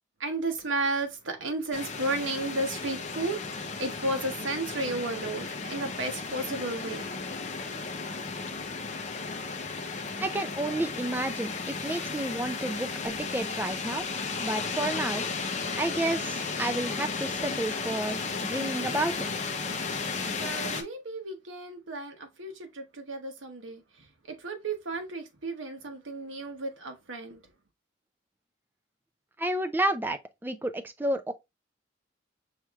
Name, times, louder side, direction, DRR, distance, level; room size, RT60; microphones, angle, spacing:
voice 1, 0.2-7.1 20.3-27.4, right 2 dB, 85° right, 1.0 m, -33 dB
sound 1, 1.7-20.8, left 4 dB, 35° left, 0.6 m, -34 dB
voice 2, 10.2-14.0 14.4-15.2 15.8-19.4 29.4-31.3, right 1 dB, 10° right, 0.4 m, -31 dB
5.5 x 3.1 x 2.3 m
head